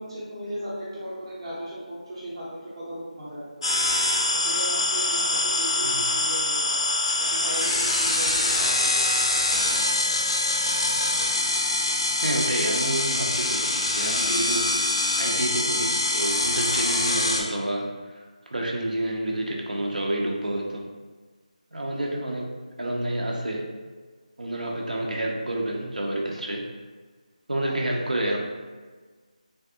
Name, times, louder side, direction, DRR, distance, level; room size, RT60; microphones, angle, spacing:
voice 1, 0.0-3.7 4.3-6.8 7.3-9.1 9.6-9.8 26.3-26.4 27.6-27.8, equal, 35° right, -8 dB, 0.6 m, -37 dB
sound 1, 3.6-17.4, left 2 dB, 45° left, 0.4 m, -24 dB
voice 2, 5.8-6.1 12.2-14.8 15.2-17.9 18.5-20.8 21.7-23.7 24.4-26.7 27.5-28.4, right 1 dB, 85° right, -1 dB, 0.6 m, -29 dB
3.4 x 2.3 x 2.7 m, 1.4 s
figure-of-eight pair, 170°, 4 cm